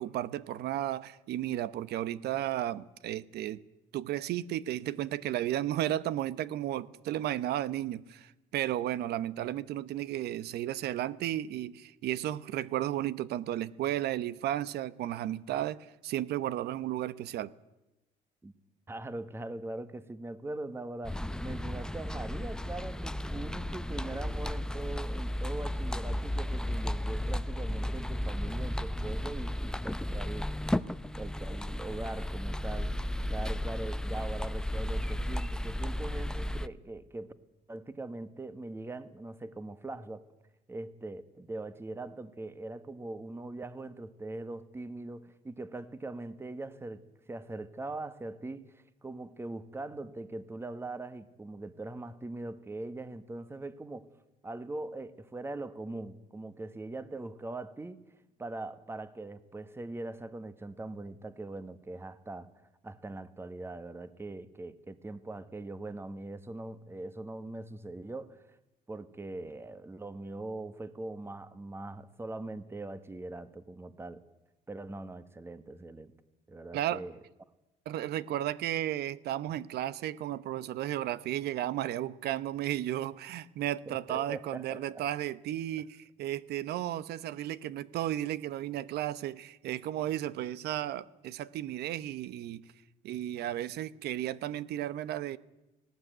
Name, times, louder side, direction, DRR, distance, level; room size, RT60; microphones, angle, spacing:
voice 1, 0.0-3.6 3.9-17.5 76.7-77.0 77.9-92.6 93.0-95.4, right 13 dB, 75° right, 0.9 m, -34 dB
voice 2, 18.9-30.7 31.1-32.9 33.3-37.3 37.7-40.2 40.7-47.0 47.3-54.1 54.4-58.0 58.4-62.5 62.8-68.6 68.9-74.2 74.7-76.1 76.5-77.2 83.9-85.0, right 2 dB, 15° right, 1.3 m, -41 dB
sound 1, 21.0-36.7, left 1 dB, 5° left, 0.7 m, -34 dB
19.0 x 17.5 x 9.2 m
cardioid pair, 110°, 17 cm